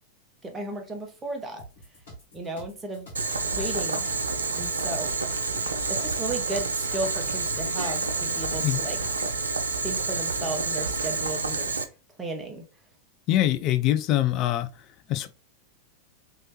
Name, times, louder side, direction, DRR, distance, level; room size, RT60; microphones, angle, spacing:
voice 1, 0.4-1.6 2.3-3.1 3.5-4.1 4.6-5.1 5.9-9.0 9.8-11.8 12.2-12.6, right 2 dB, 15° right, 0.9 m, -34 dB
sound 1, 1.6-9.5, right 1 dB, 60° left, 1.5 m, -47 dB
Boiling, 3.2-11.8, right 4 dB, 75° right, 0.4 m, -28 dB
sound 2, 3.3-11.3, right 1 dB, 20° left, 1.2 m, -45 dB
voice 2, 13.3-14.7 15.1-15.3, left 13 dB, 40° left, 0.3 m, -23 dB
3.1 x 2.8 x 2.9 m
figure-of-eight pair, 90°, 0 cm